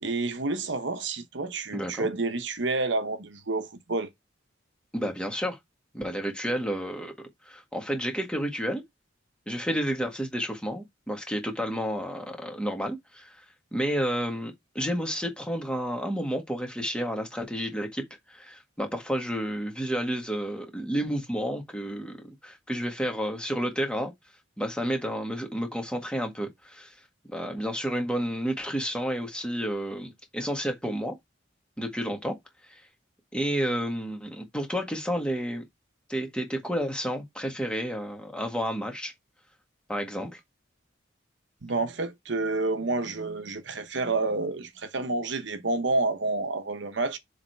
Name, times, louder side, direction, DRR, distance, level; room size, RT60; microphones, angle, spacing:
voice 1, 0.0-4.1 41.6-47.2, right 3 dB, 65° right, 0.9 m, -29 dB
voice 2, 1.7-2.1 4.9-5.6 5.9-7.1 7.4-8.8 9.5-13.4 13.7-18.0 18.3-22.2 22.4-24.1 24.6-27.0 27.3-31.1 31.8-32.3 32.7-32.8 33.3-35.6 36.1-39.1 39.9-40.4, equal, 5° left, 1.7 m, -31 dB
7.1 x 3.4 x 4.6 m
head